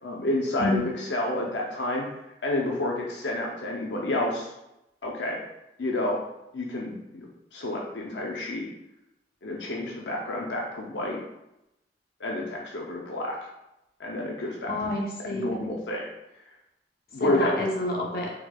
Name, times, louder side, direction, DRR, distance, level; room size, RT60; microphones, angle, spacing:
voice 1, 0.0-0.8 1.1-2.1 2.4-4.5 5.0-5.4 5.8-6.2 6.5-8.6 9.4-11.2 12.2-13.4 14.0-14.7 15.3-16.1 17.1-17.5, left 1 dB, 85° left, -2 dB, 0.7 m, -29 dB
voice 2, 14.7-15.6 17.2-18.3, left 2 dB, 55° left, -2 dB, 0.9 m, -28 dB
4.4 x 4.3 x 2.3 m, 0.89 s
head